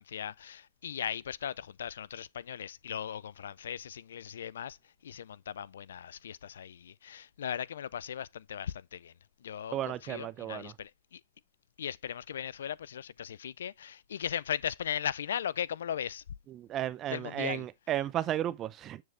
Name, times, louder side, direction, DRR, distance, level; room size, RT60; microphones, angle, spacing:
voice 1, 0.0-4.8 5.0-9.1 9.4-11.2 11.8-16.2 17.1-17.6, left 9 dB, 90° left, 0.4 m, -38 dB
voice 2, 9.7-10.7 16.5-19.0, right 12 dB, 30° right, 0.6 m, -34 dB
7.6 x 7.4 x 3.4 m
hypercardioid pair, 140°, 0 cm